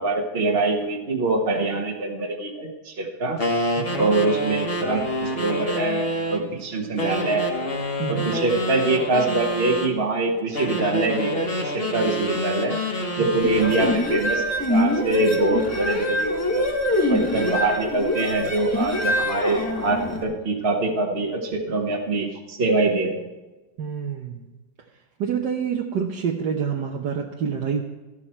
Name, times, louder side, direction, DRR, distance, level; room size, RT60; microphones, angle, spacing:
voice 1, 0.0-3.4 3.9-7.6 8.1-12.8 13.2-16.7 17.1-23.2, right 2 dB, 35° right, -1 dB, 1.4 m, -24 dB
sound 1, 3.4-6.5 7.0-9.9 10.5-14.1, equal, 30° left, 1.8 m, -27 dB
voice 2, 3.8-4.1 8.0-8.3 13.2-13.3 23.8-24.4 25.2-27.8, right 7 dB, 70° right, 0 dB, 1.6 m, -27 dB
sound 2, 13.4-20.2, left 1 dB, 10° left, 1.5 m, -24 dB
14.0 x 12.0 x 4.5 m, 1.2 s
omnidirectional pair, 2.0 m